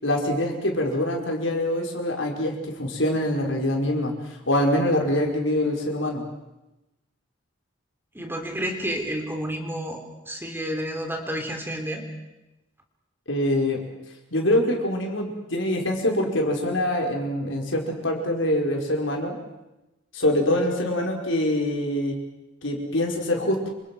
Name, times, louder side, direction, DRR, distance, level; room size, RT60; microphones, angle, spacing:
voice 1, 0.0-4.1 4.5-6.2 13.3-13.8 14.3-19.4 20.1-22.1 22.6-23.7, left 1 dB, 75° left, 1 dB, 5.4 m, -24 dB
voice 2, 8.1-12.0, equal, 10° right, 3 dB, 3.6 m, -30 dB
28.0 x 26.5 x 6.2 m, 0.99 s
head